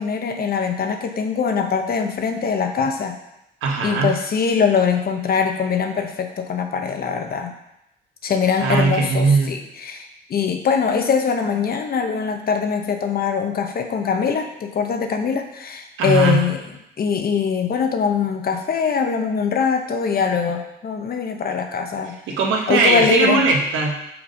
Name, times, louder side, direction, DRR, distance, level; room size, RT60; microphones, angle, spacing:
voice 1, 0.0-3.2 3.8-7.5 8.2-16.6 17.0-22.1 22.7-23.4, left 6 dB, 50° left, 5 dB, 0.9 m, -22 dB
voice 2, 3.6-4.1 8.6-9.5 16.0-16.4 22.3-24.0, right 3 dB, 85° right, 1 dB, 1.2 m, -19 dB
5.9 x 4.0 x 5.1 m, 0.84 s
cardioid pair, 90°, 20 cm